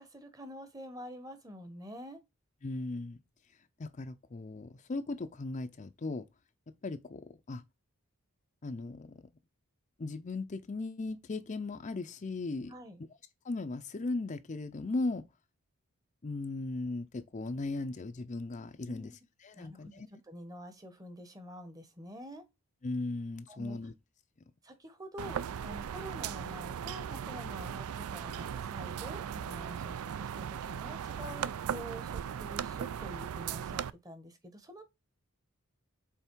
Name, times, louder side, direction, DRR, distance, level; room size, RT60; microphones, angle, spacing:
voice 1, 0.0-2.2 12.7-13.0 18.8-19.2 19.6-22.4 23.5-23.8 24.6-34.8, equal, 15° right, 0.9 m, -47 dB
voice 2, 2.6-3.2 3.8-6.2 6.8-7.2 7.5-7.6 8.6-9.3 10.0-12.7 13.4-15.2 16.2-19.1 19.4-20.1 22.8-23.9, left 3 dB, 35° left, 0.5 m, -37 dB
sound 1, 25.2-33.9, right 8 dB, 75° right, 0.4 m, -38 dB
5.6 x 4.2 x 4.5 m
head